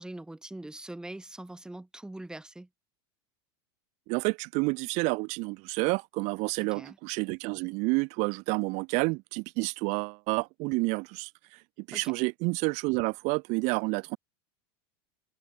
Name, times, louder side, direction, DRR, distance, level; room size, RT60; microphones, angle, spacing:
voice 1, 0.0-2.7 6.6-7.0 11.9-12.0, right 1 dB, 5° right, 3.2 m, -42 dB
voice 2, 4.1-11.6 11.9-14.2, right 29 dB, 55° right, 1.1 m, -29 dB
supercardioid pair, 115°, 14 cm